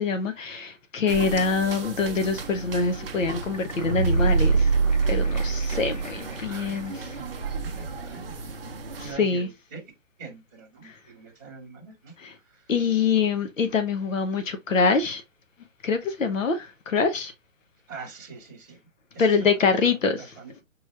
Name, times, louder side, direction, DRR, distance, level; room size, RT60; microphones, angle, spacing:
voice 1, 0.0-4.7 5.1-7.1 9.0-9.5 10.8-10.9 12.2-12.3 12.7-15.2 15.8-17.3 19.2-20.3, left 5 dB, 75° left, 0.9 m, -25 dB
sound 1, 1.1-9.1, right 4 dB, 45° right, 0.6 m, -36 dB
sound 2, 3.5-6.4 6.8-6.9, right 4 dB, 35° left, 0.4 m, -23 dB
voice 2, 6.5-8.6 9.0-9.8 10.2-12.6 17.9-18.8 19.1-20.6, right 4 dB, 15° right, 0.8 m, -44 dB
4.8 x 3.1 x 2.4 m
hypercardioid pair, 170°, 39 cm